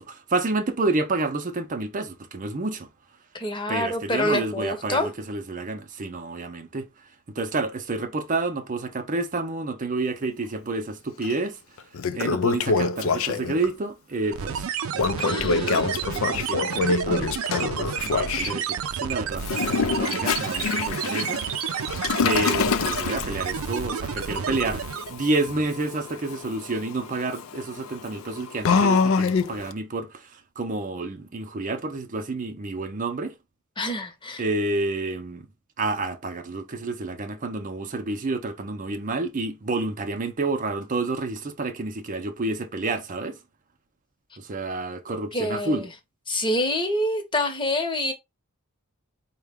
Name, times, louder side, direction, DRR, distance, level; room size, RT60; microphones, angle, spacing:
voice 1, 0.0-2.9 3.7-11.6 12.1-14.7 15.1-17.3 17.6-19.5 19.8-21.4 22.2-24.8 25.1-33.4 34.4-35.5 35.8-43.4 44.4-45.9, right 3 dB, 40° right, 0.6 m, -29 dB
voice 2, 3.3-5.1 15.2-16.0 33.8-34.4 45.3-45.9 46.3-48.1, left 1 dB, 25° left, 0.9 m, -27 dB
Toilet flush, 11.2-11.3 11.8-13.7 14.9-18.5 19.4-29.7, left 5 dB, 70° left, 0.4 m, -26 dB
sound 1, 14.3-25.2, right 7 dB, 90° right, 0.4 m, -30 dB
4.5 x 2.2 x 3.5 m
head